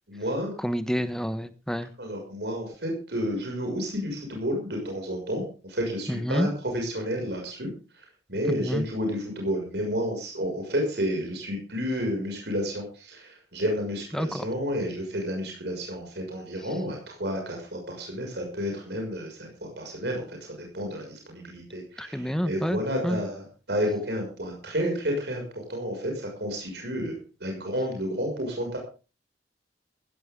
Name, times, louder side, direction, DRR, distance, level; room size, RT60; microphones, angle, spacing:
voice 1, 0.1-0.5 2.0-7.7 8.3-28.8, equal, 65° right, 1 dB, 6.4 m, -31 dB
voice 2, 0.6-1.9 6.1-6.5 8.4-8.9 14.1-14.5 22.0-23.2, equal, 5° left, 11 dB, 1.1 m, -29 dB
15.5 x 15.5 x 3.8 m, 0.35 s
head